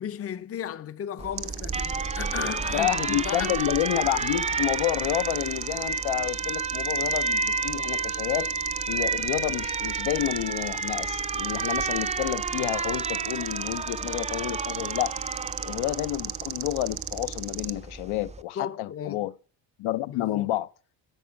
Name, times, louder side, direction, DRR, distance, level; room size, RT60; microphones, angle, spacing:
voice 1, 0.0-3.6 18.6-19.3 20.1-20.5, left 9 dB, 30° left, 0.5 m, -35 dB
Alarm, 1.2-18.4, right 4 dB, 15° right, 0.4 m, -31 dB
sound 1, 1.4-17.7, right 16 dB, 85° right, 0.7 m, -36 dB
voice 2, 2.7-8.5 8.9-15.1 15.6-19.3 19.8-20.7, left 14 dB, 80° left, 0.7 m, -29 dB
9.0 x 6.3 x 5.7 m
cardioid pair, 85°, 48 cm